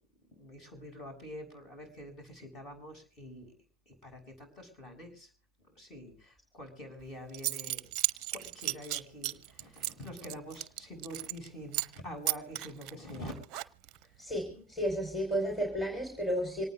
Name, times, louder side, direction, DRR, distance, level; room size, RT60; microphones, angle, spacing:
voice 1, 0.3-3.5 3.9-5.3 5.8-7.9 8.3-13.4 14.5-14.6 15.2-15.4, equal, 30° left, 7.1 m, -46 dB
Zipper (clothing) / Coin (dropping), 7.0-7.1 7.3-11.5 11.7-12.0 12.3-14.0, right 16 dB, 35° right, 0.8 m, -35 dB
voice 2, 14.2-16.7, equal, 10° left, 4.5 m, -32 dB
26.0 x 19.0 x 2.5 m
figure-of-eight pair, 90°, 0 cm